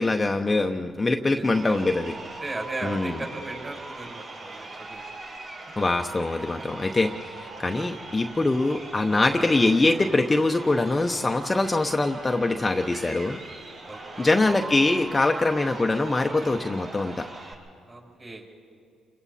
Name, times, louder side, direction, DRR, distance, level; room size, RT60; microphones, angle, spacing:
voice 1, 0.0-2.1 2.8-3.1 5.8-13.4 14.2-17.3, left 2 dB, 20° left, 4 dB, 0.9 m, -23 dB
voice 2, 1.3-1.8 2.4-5.0 7.7-8.1 13.8-14.7 17.9-18.5, right 2 dB, 30° right, -1 dB, 6.1 m, -37 dB
Crowd, 1.5-17.5, right 2 dB, 55° right, 7.0 m, -40 dB
29.0 x 23.0 x 4.3 m, 2.2 s
cardioid pair, 90°, 0 cm